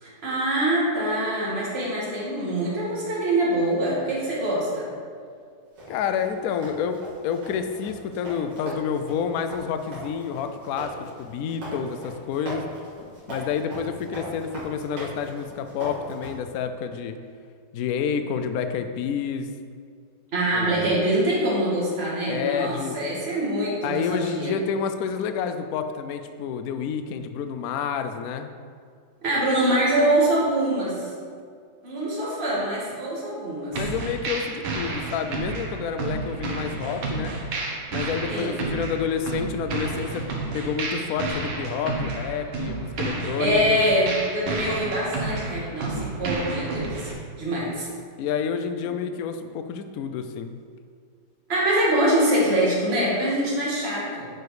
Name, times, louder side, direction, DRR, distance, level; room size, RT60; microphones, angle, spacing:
voice 1, 0.0-4.9 20.3-24.5 29.2-31.1 31.8-33.8 38.3-38.6 43.4-47.1 47.4-47.9 51.5-54.3, right 1 dB, 30° right, -6 dB, 2.1 m, -24 dB
sound 1, 5.8-16.3, equal, 60° right, 3.0 m, -38 dB
voice 2, 5.9-12.7 13.3-17.2 17.7-19.5 20.5-20.9 22.2-23.0 23.8-28.5 33.7-37.4 37.9-40.3 40.5-43.8 48.2-50.6, left 7 dB, 85° left, 8 dB, 0.7 m, -29 dB
sound 2, 33.7-47.1, right 3 dB, 75° right, 2.0 m, -31 dB
9.2 x 4.8 x 4.8 m, 2.1 s
omnidirectional pair, 2.2 m